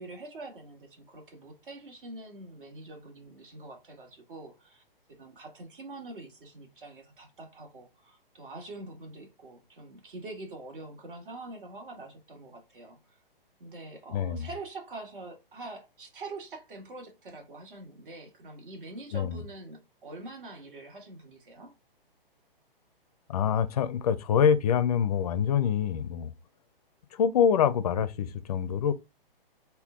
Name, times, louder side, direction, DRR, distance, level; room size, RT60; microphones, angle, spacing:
voice 1, 0.0-4.8 5.1-13.0 13.6-21.7, right 2 dB, 60° right, 1.6 m, -45 dB
voice 2, 14.1-14.5 19.1-19.4 23.3-26.3 27.1-28.9, left 8 dB, 40° left, 0.5 m, -25 dB
3.6 x 2.3 x 3.7 m
figure-of-eight pair, 130°, 29 cm